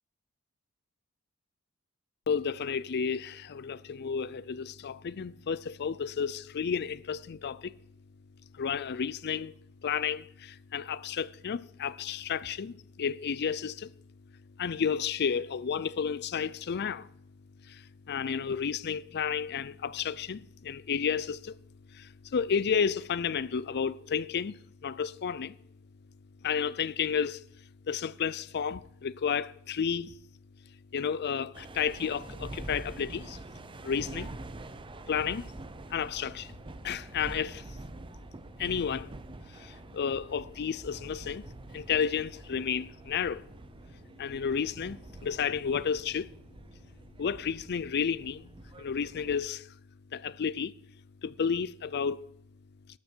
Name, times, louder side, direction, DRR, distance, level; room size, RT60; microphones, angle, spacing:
voice 1, 2.3-7.7 8.6-9.5 9.8-13.9 14.6-17.1 17.7-21.5 21.9-24.6 24.8-25.6 26.4-27.4 27.9-30.1 30.9-33.4 33.8-34.3 35.1-35.4 35.9-36.5 36.8-37.6 38.6-39.1 39.5-41.5 41.7-43.5 44.2-46.3 47.2-48.5 48.8-49.7 50.1-50.7 51.2-52.2, left 7 dB, 50° left, 0.4 m, -32 dB
sound 1, 31.5-49.5, right 2 dB, 25° right, 0.6 m, -46 dB
12.5 x 12.5 x 4.4 m
head